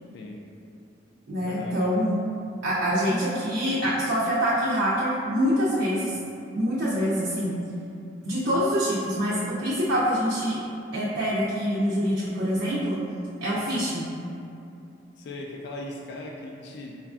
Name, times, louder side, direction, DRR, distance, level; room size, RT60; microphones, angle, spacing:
voice 1, 0.1-0.4 1.5-1.9 15.2-17.0, left 2 dB, 60° left, 0 dB, 0.3 m, -38 dB
voice 2, 1.3-2.2 2.6-6.2 6.5-7.6 8.2-10.6 10.9-13.0 13.4-14.1, equal, 70° right, -9 dB, 0.5 m, -25 dB
4.4 x 2.4 x 2.3 m, 2.7 s
head